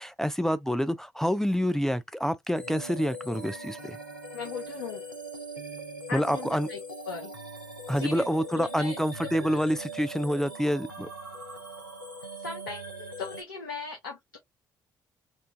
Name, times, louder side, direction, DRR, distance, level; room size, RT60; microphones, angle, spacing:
voice 1, 0.0-4.0 6.1-6.7 7.9-11.1, equal, 5° left, 0.4 m, -27 dB
sound 1, 2.5-13.4, right 2 dB, 90° right, 0.7 m, -41 dB
voice 2, 4.3-5.0 6.1-6.8 7.1-7.3 7.9-8.3 8.5-9.5 12.4-12.9 13.2-14.4, left 5 dB, 80° left, 0.7 m, -38 dB
4.5 x 2.5 x 2.5 m
figure-of-eight pair, 45°, 11 cm